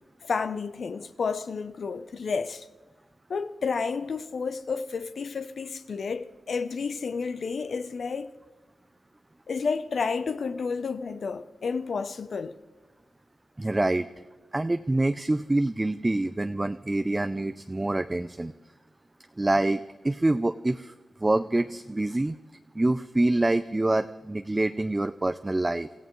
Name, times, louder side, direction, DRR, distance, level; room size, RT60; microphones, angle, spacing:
voice 1, 0.2-2.7 3.3-8.3 9.5-12.6, left 5 dB, 65° left, 0.5 m, -31 dB
voice 2, 13.6-14.1 14.5-18.5 19.4-20.9 21.2-22.4 22.7-25.9, right 2 dB, 20° right, 0.4 m, -26 dB
29.0 x 15.0 x 3.1 m
wide cardioid pair, 85°, 0 cm